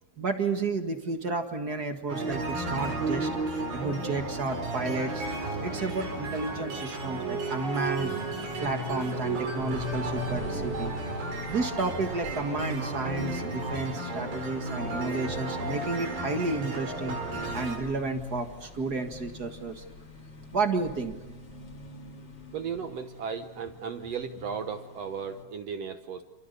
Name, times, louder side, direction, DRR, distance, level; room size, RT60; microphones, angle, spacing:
voice 1, 0.2-5.2 5.6-8.1 8.6-10.9 11.5-17.2 17.5-19.8 20.5-21.1, right 3 dB, 40° right, 5 dB, 1.5 m, -31 dB
sound 1, 2.1-17.8, right 2 dB, 85° right, 6.4 m, -33 dB
sound 2, 7.7-25.4, left 4 dB, 40° left, 4.1 m, -43 dB
voice 2, 22.5-26.2, right 6 dB, 65° right, 8 dB, 1.6 m, -35 dB
28.5 x 28.5 x 6.9 m, 1.1 s
omnidirectional pair, 4.2 m